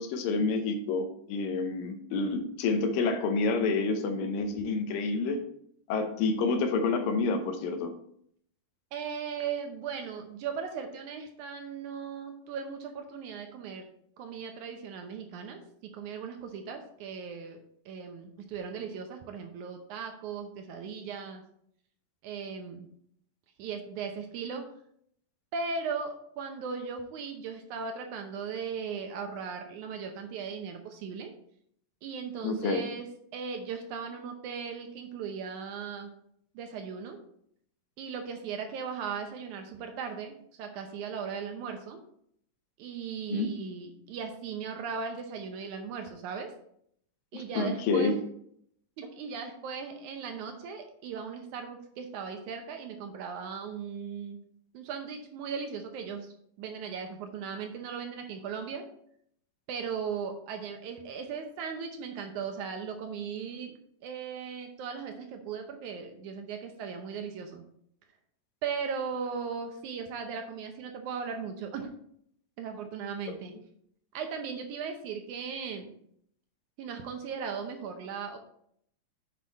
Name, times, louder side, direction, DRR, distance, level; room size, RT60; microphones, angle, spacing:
voice 1, 0.0-5.4 5.9-7.9 32.4-32.8 43.3-43.5 47.3-48.1, left 4 dB, 85° left, 7 dB, 2.6 m, -28 dB
voice 2, 8.9-13.9 14.2-17.6 17.9-21.4 22.2-22.9 23.6-24.6 25.5-31.3 32.0-33.1 33.3-36.1 36.6-37.2 38.0-42.0 42.8-46.5 47.3-48.2 49.0-54.4 54.7-58.9 59.7-63.7 64.0-67.6 68.6-71.9 72.6-73.5 74.1-75.9 76.8-78.4, right 6 dB, 75° right, 5 dB, 2.0 m, -37 dB
7.6 x 5.8 x 4.1 m, 0.68 s
omnidirectional pair, 3.9 m